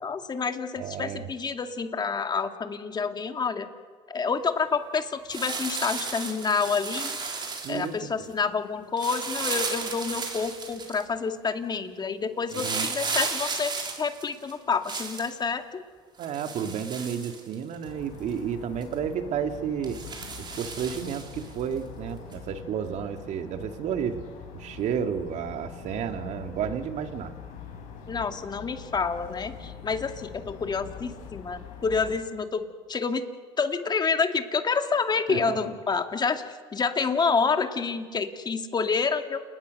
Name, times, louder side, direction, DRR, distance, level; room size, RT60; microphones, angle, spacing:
voice 1, 0.0-3.7 4.1-7.1 7.7-13.7 14.0-15.8 28.1-33.2 33.6-39.4, left 5 dB, 30° left, 7 dB, 2.1 m, -28 dB
voice 2, 0.8-1.3 7.6-8.3 12.6-12.9 16.2-20.0 20.6-24.2 24.5-27.3 35.3-35.6, right 8 dB, 60° right, 7 dB, 2.2 m, -31 dB
sound 1, 5.3-7.9 9.0-11.0 12.5-15.3 16.2-17.8 18.3-18.4 18.8-18.9 19.8-21.5 22.3-22.4, right 4 dB, 35° right, 4.1 m, -34 dB
sound 2, 17.8-32.2, left 7 dB, 70° left, 6.4 m, -43 dB
29.5 x 19.5 x 6.5 m, 1.5 s
supercardioid pair, 85°, 14 cm